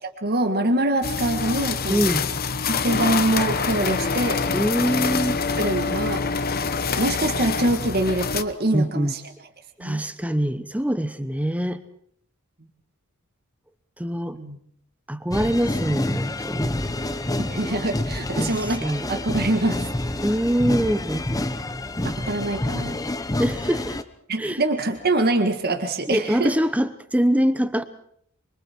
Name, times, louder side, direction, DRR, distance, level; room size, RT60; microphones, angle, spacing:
voice 1, 0.2-2.1 2.7-4.4 5.6-6.6 7.0-9.2 9.8-10.0 14.3-14.6 17.4-19.9 22.2-23.0 24.3-26.5, right 2 dB, 50° right, 5 dB, 1.9 m, -24 dB
sound 1, 1.0-8.4, left 5 dB, 45° left, 1.0 m, -25 dB
voice 2, 1.9-2.3 4.5-5.4 8.7-9.1 9.8-11.8 14.0-14.4 15.1-16.7 18.4-18.5 18.8-19.0 20.2-21.3 23.4-24.0 24.4-24.6 26.1-27.8, equal, 5° right, 11 dB, 1.1 m, -24 dB
sound 2, 15.3-24.0, left 1 dB, 15° left, 0.9 m, -28 dB
25.5 x 24.0 x 4.7 m, 0.67 s
head